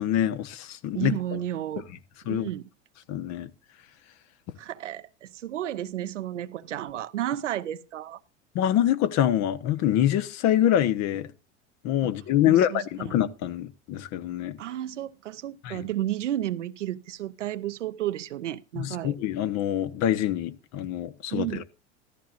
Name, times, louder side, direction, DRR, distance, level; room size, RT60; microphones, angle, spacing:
voice 1, 0.0-1.4 2.3-2.5 3.1-3.5 8.5-11.3 11.8-14.6 15.6-15.8 18.8-21.6, left 11 dB, 50° left, 1.1 m, -25 dB
voice 2, 0.9-1.9 2.3-2.7 4.6-8.2 12.0-12.2 12.5-13.1 14.6-19.2 21.3-21.6, right 12 dB, 90° right, 0.7 m, -32 dB
14.5 x 13.5 x 2.5 m
hypercardioid pair, 90°, 35 cm